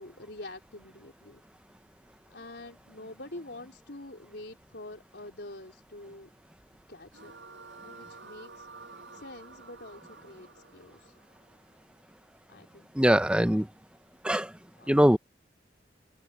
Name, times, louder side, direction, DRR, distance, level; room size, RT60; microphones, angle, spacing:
voice 1, 0.0-1.4 2.3-6.3 6.9-7.3 7.8-8.7 9.1-11.0 12.5-12.9 14.8-14.9, left 2 dB, 70° left, 4.1 m, -46 dB
sound 1, 7.1-12.3, right 4 dB, 90° right, 5.8 m, -50 dB
voice 2, 13.0-13.7 14.2-14.5 14.9-15.2, equal, 5° right, 0.8 m, -22 dB
open air
head